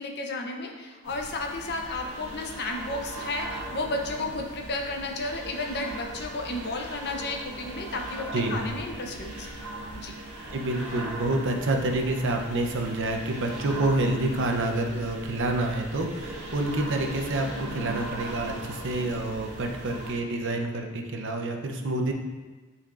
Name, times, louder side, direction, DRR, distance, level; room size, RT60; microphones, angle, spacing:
voice 1, 0.0-9.5 9.9-10.1, left 2 dB, 50° left, 2 dB, 0.8 m, -33 dB
sound 1, 1.0-20.1, right 1 dB, 90° right, 1.4 m, -39 dB
voice 2, 10.5-22.1, right 2 dB, 55° right, 2 dB, 0.7 m, -28 dB
10.0 x 4.3 x 2.5 m, 1.3 s
head